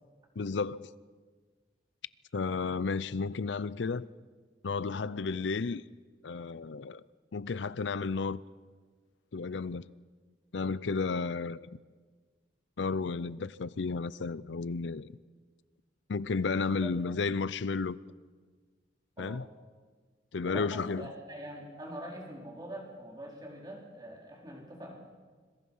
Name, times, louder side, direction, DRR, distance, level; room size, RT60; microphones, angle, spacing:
voice 1, 0.4-0.9 2.3-4.1 4.6-5.8 6.2-7.0 7.3-8.4 9.3-9.9 10.5-11.6 12.8-15.1 16.1-18.0 19.2-19.5 20.3-21.1, left 4 dB, 80° left, 0.5 m, -32 dB
voice 2, 20.4-25.0, right 1 dB, 20° right, 4.2 m, -44 dB
26.0 x 22.5 x 5.6 m
head